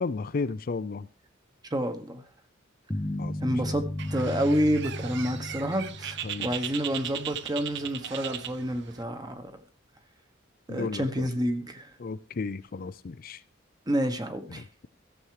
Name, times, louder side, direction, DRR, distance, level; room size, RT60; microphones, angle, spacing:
voice 1, 0.0-1.1 3.2-3.7 6.2-6.5 10.7-11.3 12.0-13.4 14.5-14.9, left 4 dB, 50° left, 0.5 m, -34 dB
voice 2, 1.7-2.2 3.4-3.8 4.1-9.5 10.7-11.9 13.9-14.6, equal, 20° right, 1.3 m, -29 dB
sound 1, 2.9-7.1, left 1 dB, 20° left, 0.9 m, -35 dB
Bird, 4.0-9.0, right 10 dB, 60° right, 0.7 m, -38 dB
14.5 x 7.2 x 4.8 m
head